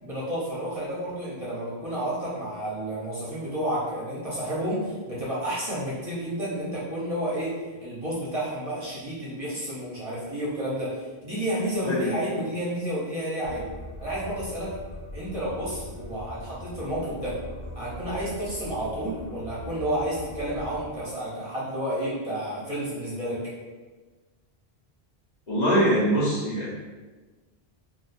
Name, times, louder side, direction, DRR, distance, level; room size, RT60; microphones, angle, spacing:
voice 1, 0.0-7.5 7.8-13.6 14.0-14.7 15.1-17.4 17.7-23.4, right 1 dB, 35° right, -8 dB, 0.9 m, -31 dB
voice 2, 11.8-12.3 25.5-26.8, equal, 45° left, -8 dB, 0.9 m, -23 dB
sound 1, 13.4-21.0, equal, 90° left, 0.8 m, -41 dB
2.4 x 2.4 x 4.1 m, 1.3 s
omnidirectional pair, 1.1 m